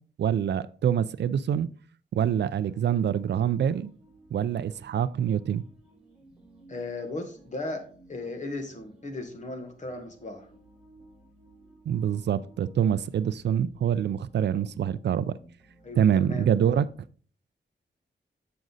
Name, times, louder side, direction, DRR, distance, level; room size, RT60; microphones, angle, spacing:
voice 1, 0.2-1.7 2.1-3.9 4.3-5.6 11.9-15.4 16.0-16.9, right 9 dB, 70° right, 0.4 m, -25 dB
sound 1, 2.2-17.0, right 1 dB, 5° right, 3.0 m, -57 dB
voice 2, 6.7-10.5 15.8-16.7, left 2 dB, 40° left, 1.6 m, -36 dB
7.8 x 6.2 x 4.0 m
wide cardioid pair, 145°, 18 cm